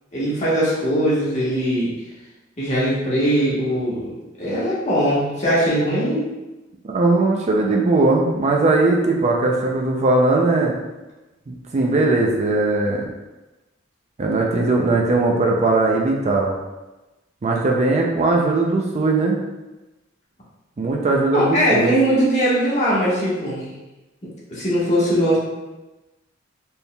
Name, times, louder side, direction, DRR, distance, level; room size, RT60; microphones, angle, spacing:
voice 1, 0.1-1.9 2.6-6.3 21.3-23.7 24.5-25.4, equal, 35° left, -8 dB, 1.3 m, -20 dB
voice 2, 6.8-10.7 11.5-13.1 14.2-16.5 17.4-19.4 20.8-22.0, right 2 dB, 35° right, 0 dB, 0.4 m, -19 dB
4.3 x 3.4 x 2.3 m, 1.1 s
head